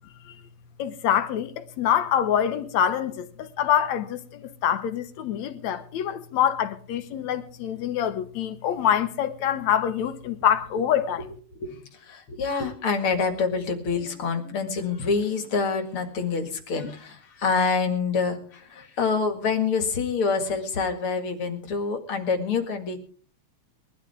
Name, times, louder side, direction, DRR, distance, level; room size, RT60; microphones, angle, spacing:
voice 1, 0.8-11.2, left 9 dB, 75° left, 2.3 m, -25 dB
voice 2, 11.6-23.0, left 5 dB, 50° left, 2.7 m, -26 dB
22.0 x 13.0 x 3.5 m
omnidirectional pair, 3.3 m